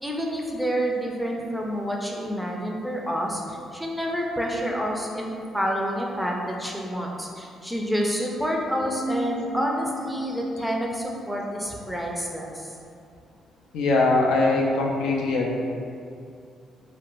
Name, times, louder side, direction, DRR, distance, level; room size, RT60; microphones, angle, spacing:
voice 1, 0.0-12.7, equal, 5° right, -1 dB, 0.4 m, -28 dB
voice 2, 13.7-15.6, left 2 dB, 85° left, -1 dB, 0.4 m, -22 dB
2.4 x 2.1 x 2.9 m, 2.4 s
cardioid pair, 90°, 0 cm